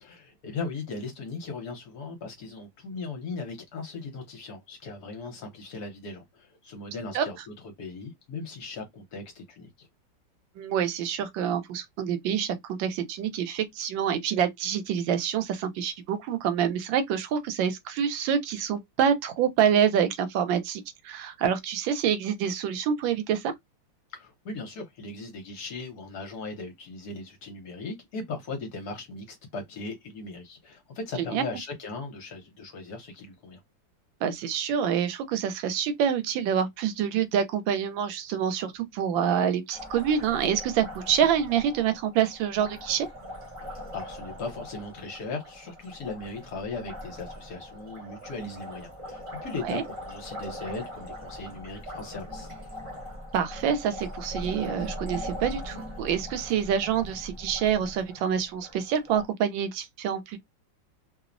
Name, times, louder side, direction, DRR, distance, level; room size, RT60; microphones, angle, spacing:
voice 1, 0.0-9.9 24.1-33.6 43.6-52.5, left 3 dB, 65° left, 1.1 m, -38 dB
voice 2, 10.6-23.5 31.2-31.4 34.2-43.1 49.6-49.8 53.3-60.4, right 8 dB, 85° right, 1.3 m, -27 dB
Liquid, 39.7-59.2, left 1 dB, 25° right, 0.7 m, -41 dB
3.1 x 2.0 x 2.4 m
omnidirectional pair, 2.0 m